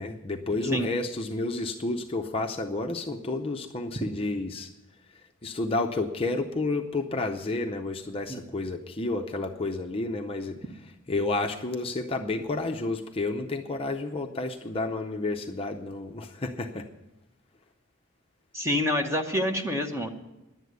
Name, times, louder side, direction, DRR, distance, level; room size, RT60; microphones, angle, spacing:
voice 1, 0.0-4.7 5.4-10.6 11.1-16.9, left 2 dB, 25° left, 3 dB, 0.6 m, -30 dB
voice 2, 18.5-20.1, left 1 dB, 15° right, 3 dB, 0.9 m, -27 dB
11.0 x 8.1 x 9.4 m, 1.0 s
head